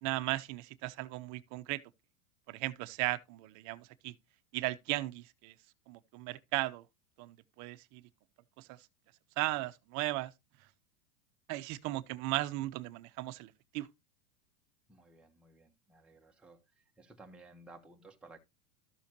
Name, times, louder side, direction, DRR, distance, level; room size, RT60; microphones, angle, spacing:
voice 1, 0.0-1.8 2.5-4.1 4.5-5.5 5.9-6.8 7.2-8.0 8.6-8.8 9.4-10.3 11.5-13.9, right 19 dB, 45° right, 1.0 m, -36 dB
voice 2, 14.9-18.4, right 2 dB, ahead, 1.3 m, -56 dB
13.0 x 7.0 x 2.9 m
supercardioid pair, 130°, 42 cm